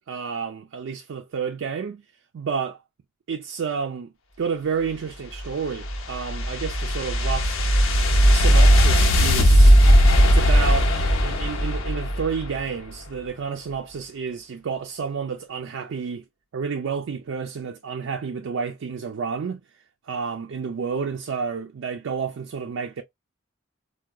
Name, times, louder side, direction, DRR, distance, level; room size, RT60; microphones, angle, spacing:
voice 1, 0.1-2.0 2.3-2.8 3.3-7.6 8.3-9.8 10.2-10.9 11.2-16.2 16.5-19.6 20.1-23.0, right 6 dB, 70° right, 0.4 m, -30 dB
sound 1, 5.4-12.6, equal, 80° left, 0.7 m, -17 dB
4.6 x 2.2 x 2.2 m
head